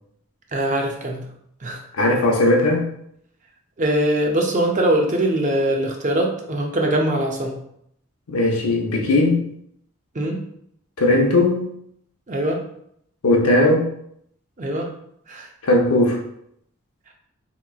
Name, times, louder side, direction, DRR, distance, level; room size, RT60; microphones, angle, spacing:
voice 1, 0.5-1.2 1.6-1.8 3.8-7.6 10.1-10.4 12.3-12.6 14.6-14.9 15.3-15.5, right 1 dB, 35° right, 1 dB, 0.5 m, -22 dB
voice 2, 2.0-2.8 8.3-9.5 11.0-11.7 13.2-13.9 15.6-16.2, left 2 dB, 85° left, 1 dB, 0.7 m, -18 dB
4.7 x 2.9 x 2.4 m, 0.71 s
head